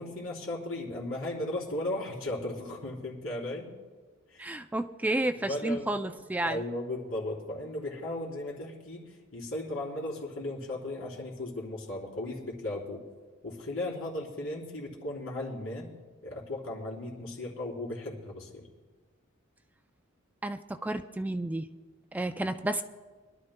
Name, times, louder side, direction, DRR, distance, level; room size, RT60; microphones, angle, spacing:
voice 1, 0.0-3.7 4.3-4.6 5.4-6.0 6.4-13.0 13.4-15.9 16.2-18.7 22.4-22.5, left 1 dB, 85° left, -2 dB, 3.5 m, -36 dB
voice 2, 4.4-6.6 20.4-21.7 22.1-22.8, right 1 dB, 10° right, 7 dB, 0.3 m, -31 dB
25.0 x 12.0 x 2.2 m, 1.4 s
head